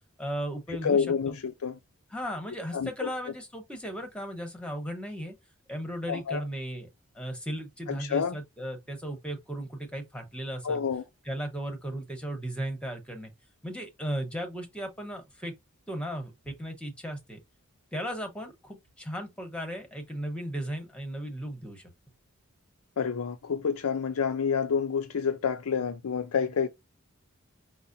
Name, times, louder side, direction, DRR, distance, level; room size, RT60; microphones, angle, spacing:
voice 1, 0.2-1.3 2.1-5.3 5.7-6.9 7.1-10.8 11.2-13.3 13.6-15.5 15.9-17.4 17.9-21.9, equal, 5° left, 1.0 m, -36 dB
voice 2, 0.7-1.8 2.7-3.1 6.1-6.4 7.9-8.4 10.6-11.0 23.0-26.7, left 6 dB, 85° left, 0.5 m, -28 dB
5.5 x 2.1 x 2.6 m
head